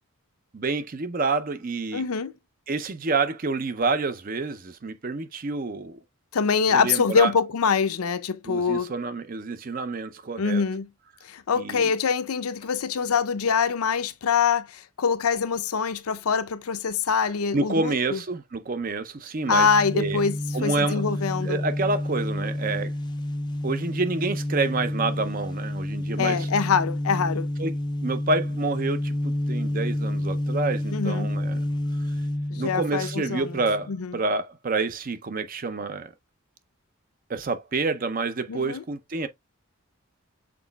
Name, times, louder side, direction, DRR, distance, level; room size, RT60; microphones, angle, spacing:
voice 1, 0.5-2.0 2.7-6.0 6.7-7.3 8.4-10.6 11.6-11.9 17.5-19.7 19.9-20.2 20.5-21.0 21.4-22.9 23.6-26.5 27.6-27.7 28.0-31.6 32.5-36.1 37.3-39.3, right 3 dB, 40° right, 0.5 m, -28 dB
voice 2, 1.9-2.3 6.3-8.9 10.4-10.9 11.2-18.2 19.5-21.6 26.2-27.5 30.9-31.3 32.5-33.6 33.9-34.2 38.5-38.8, left 6 dB, 85° left, 0.5 m, -24 dB
sound 1, 19.4-33.9, left 1 dB, 20° left, 0.4 m, -29 dB
6.0 x 3.9 x 2.2 m
head